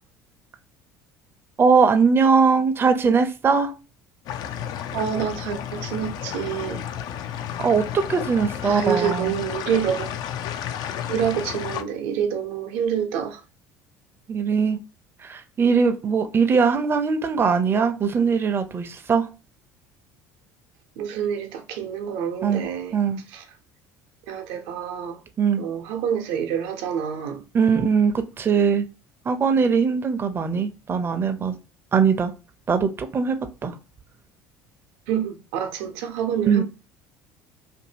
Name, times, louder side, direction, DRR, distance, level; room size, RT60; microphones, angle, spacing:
voice 1, 1.6-3.7 7.6-9.4 14.3-14.8 15.2-19.3 22.4-22.6 22.9-23.2 25.4-25.6 27.5-28.9 29.3-31.6 31.9-32.3 32.7-33.7 36.5-36.6, right 5 dB, 30° right, 0.5 m, -21 dB
sound 1, 4.3-11.8, left 9 dB, 60° left, 0.4 m, -32 dB
voice 2, 4.9-6.8 8.6-10.2 11.1-13.4 21.0-23.0 23.3-23.4 24.3-25.2 25.6-27.4 35.1-36.6, right 8 dB, 75° right, 0.7 m, -27 dB
2.7 x 2.6 x 2.7 m
hypercardioid pair, 80°, 8 cm